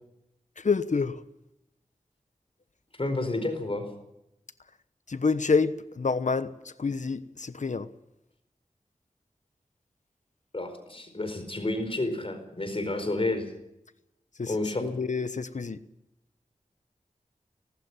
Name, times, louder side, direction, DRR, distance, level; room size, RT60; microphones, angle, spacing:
voice 1, 0.6-1.2 5.1-6.5 6.8-7.9 14.4-14.5 14.8-15.8, left 4 dB, 65° left, 13 dB, 1.1 m, -27 dB
voice 2, 3.0-3.9 10.5-13.5 14.5-14.9, left 2 dB, 45° left, 8 dB, 4.7 m, -30 dB
19.0 x 19.0 x 7.3 m, 0.83 s
wide cardioid pair, 70°, 13 cm